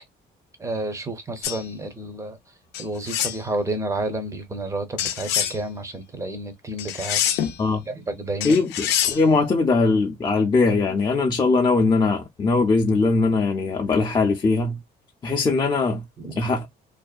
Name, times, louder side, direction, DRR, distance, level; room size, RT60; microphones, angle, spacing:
voice 1, 0.6-2.4 2.8-7.2 7.9-8.6 16.2-16.4, right 2 dB, 20° right, 0.7 m, -30 dB
sound 1, 1.4-1.6 2.7-3.4 5.0-5.6 6.8-7.6 8.4-9.2, left 10 dB, 85° left, 0.5 m, -25 dB
voice 2, 8.4-14.8 15.2-16.0 16.4-16.7, left 3 dB, 25° left, 0.5 m, -21 dB
2.6 x 2.1 x 2.2 m
cardioid pair, 110°, 17 cm